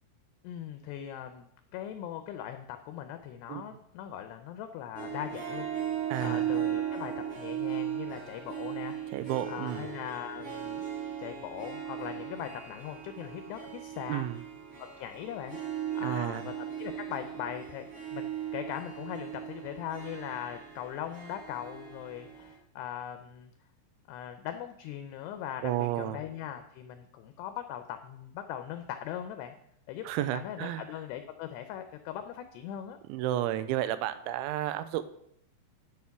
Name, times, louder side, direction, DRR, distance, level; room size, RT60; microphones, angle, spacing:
voice 1, 0.4-5.7 6.2-9.0 9.5-10.8 11.2-14.3 14.8-15.6 15.9-17.9 18.1-18.3 18.5-23.5 24.1-29.6 29.9-33.0, left 10 dB, 80° left, 8 dB, 2.5 m, -40 dB
Harp, 4.9-22.5, right 10 dB, 25° right, 6.0 m, -37 dB
voice 2, 6.1-6.4 9.1-9.9 14.1-14.4 16.0-16.4 25.6-26.2 30.1-30.9 33.1-35.0, right 13 dB, 90° right, 13 dB, 3.0 m, -32 dB
11.0 x 6.5 x 5.8 m, 0.73 s
omnidirectional pair, 5.4 m